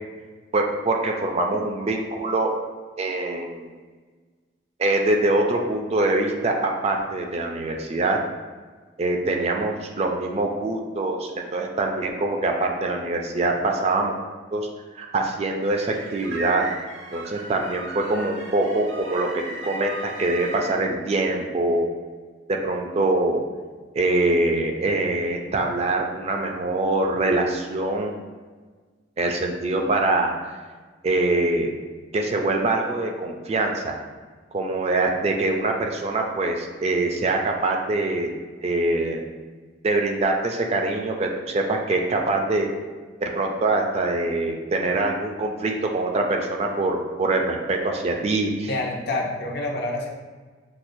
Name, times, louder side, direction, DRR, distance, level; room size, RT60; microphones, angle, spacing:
voice 1, 0.5-2.5 3.0-3.7 4.8-8.2 9.0-14.2 14.5-14.7 15.0-16.6 17.1-21.9 22.5-23.4 23.9-28.1 29.2-30.3 31.0-31.7 32.1-33.9 34.5-38.3 38.6-39.2 39.8-42.7 43.2-48.7, right 2 dB, 35° right, 2 dB, 0.4 m, -24 dB
sound 1, 15.6-20.8, right 2 dB, 80° right, 0.6 m, -37 dB
voice 2, 48.7-50.1, left 2 dB, 60° left, 0 dB, 0.6 m, -27 dB
5.9 x 2.1 x 2.6 m, 1.4 s
head